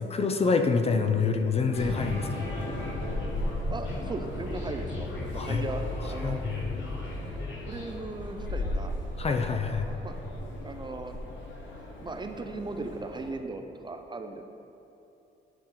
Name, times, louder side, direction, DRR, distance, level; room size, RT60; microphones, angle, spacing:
voice 1, 0.0-2.5 5.3-5.6 6.2-6.7 9.2-9.9, left 4 dB, 30° left, 6 dB, 0.5 m, -27 dB
sound 1, 1.6-7.5, right 1 dB, 60° right, 1.4 m, -46 dB
sound 2, 1.7-13.3, left 2 dB, 70° left, 1.1 m, -35 dB
voice 2, 3.7-5.8 6.1-6.4 7.7-9.0 10.0-10.1 10.6-11.2 12.0-14.4, right 3 dB, 20° right, 5 dB, 0.4 m, -37 dB
9.8 x 4.3 x 3.8 m, 3.0 s
cardioid pair, 90°, 20 cm